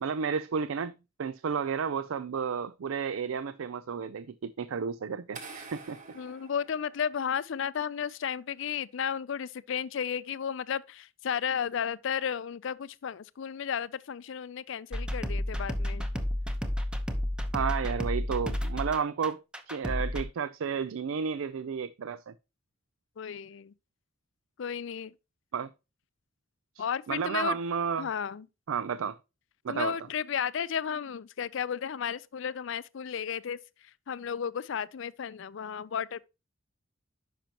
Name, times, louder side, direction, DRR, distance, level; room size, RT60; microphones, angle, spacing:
voice 1, 0.0-6.0 17.5-22.3 25.5-25.7 26.8-28.1 28.7-29.2 29.6-30.0, right 6 dB, 85° right, 0.4 m, -32 dB
sound 1, 5.3-7.4, right 4 dB, 40° right, 1.5 m, -47 dB
voice 2, 6.1-16.1 23.2-23.7 24.6-25.1 26.8-27.6 28.0-28.5 29.7-36.2, left 7 dB, 65° left, 0.4 m, -33 dB
sound 2, 14.9-20.2, left 1 dB, 5° right, 0.8 m, -31 dB
10.0 x 5.9 x 2.9 m
head